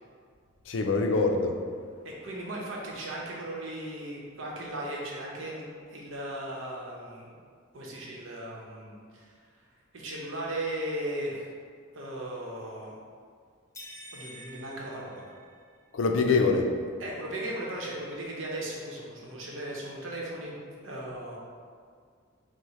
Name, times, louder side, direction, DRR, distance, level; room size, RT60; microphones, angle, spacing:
voice 1, 0.7-1.6 15.9-16.7, left 4 dB, 70° left, 4 dB, 0.4 m, -24 dB
voice 2, 2.0-7.3 7.7-9.6 9.9-11.5 11.9-12.9 14.1-15.2 16.2-16.3 17.0-20.6 20.8-21.4, right 1 dB, 90° right, -3 dB, 0.8 m, -37 dB
sound 1, 13.7-15.9, equal, 15° left, 0.6 m, -48 dB
6.2 x 2.1 x 3.1 m, 2.1 s
head